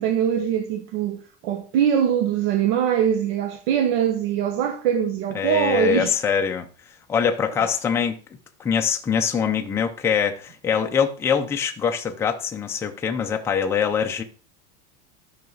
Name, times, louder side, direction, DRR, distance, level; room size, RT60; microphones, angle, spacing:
voice 1, 0.0-6.1 7.6-7.7, right 9 dB, 60° right, 1.2 m, -22 dB
voice 2, 5.3-6.7 7.1-8.2 8.6-14.2, left 7 dB, 10° left, 0.5 m, -23 dB
12.5 x 5.8 x 3.9 m
supercardioid pair, 180°, 34 cm